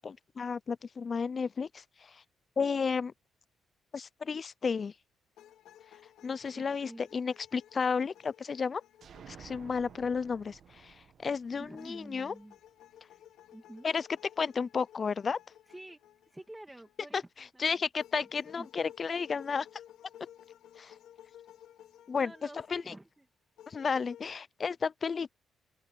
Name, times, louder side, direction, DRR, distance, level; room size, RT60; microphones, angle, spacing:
voice 1, 0.0-2.2 2.6-3.1 3.9-4.9 6.2-8.8 9.3-12.3 13.8-14.1 14.4-15.4 17.1-19.7 20.8-20.9 22.1-22.3 22.7-22.9 23.7-25.3, left 5 dB, 40° left, 0.4 m, -33 dB
sound 1, 5.4-10.4 11.7-17.2 18.0-22.9 23.6-24.4, left 11 dB, 80° left, 3.1 m, -56 dB
voice 2, 6.5-7.2 11.6-12.6 13.5-13.9 15.7-16.0 16.3-17.6 18.5-18.7 22.1-23.3, right 1 dB, 10° right, 2.2 m, -49 dB
sound 2, 9.0-12.7, right 8 dB, 60° right, 1.1 m, -54 dB
cardioid pair, 90°, 0 cm